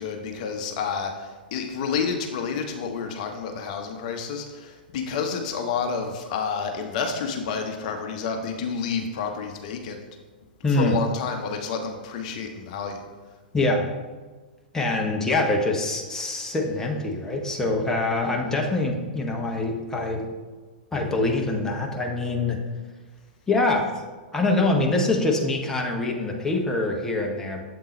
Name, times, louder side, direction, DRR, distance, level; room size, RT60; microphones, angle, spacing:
voice 1, 0.0-10.0 10.7-13.0, left 5 dB, 45° left, 4 dB, 0.8 m, -29 dB
voice 2, 10.6-11.0 13.5-13.8 14.7-20.2 20.9-22.6 23.5-23.9 24.3-27.6, left 2 dB, 10° left, 0 dB, 0.8 m, -24 dB
7.6 x 3.8 x 4.1 m, 1.4 s
figure-of-eight pair, 105°, 5 cm